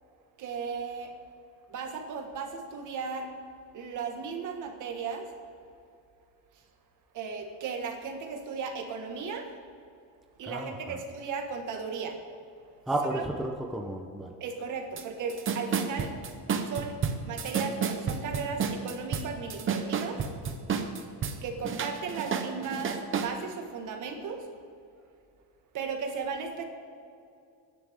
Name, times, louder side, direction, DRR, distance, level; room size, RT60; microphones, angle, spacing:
voice 1, 0.4-1.2 1.7-3.3 3.7-5.3 7.1-9.5 10.4-12.2 13.1-13.2 14.4-16.1 16.6-17.0 17.2-20.2 21.4-24.5 25.7-26.6, right 5 dB, 50° right, 4 dB, 1.8 m, -36 dB
voice 2, 10.4-11.0 12.9-14.3, right 1 dB, ahead, 0 dB, 0.8 m, -32 dB
sound 1, 15.0-15.1 15.3-21.4 21.6-23.3, right 6 dB, 30° right, 1.0 m, -30 dB
23.0 x 10.5 x 3.7 m, 2.5 s
cardioid pair, 170°, 39 cm